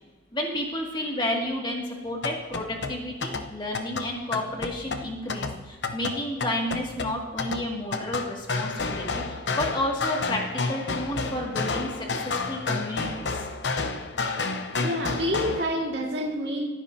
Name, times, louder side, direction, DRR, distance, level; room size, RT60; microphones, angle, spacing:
voice 1, 0.3-13.3, left 1 dB, 25° left, -1 dB, 2.2 m, -31 dB
sound 1, 2.1-15.6, left 3 dB, 85° left, 0.9 m, -31 dB
voice 2, 14.8-16.7, equal, 80° right, 1 dB, 2.1 m, -28 dB
25.5 x 9.7 x 2.8 m, 1.3 s
head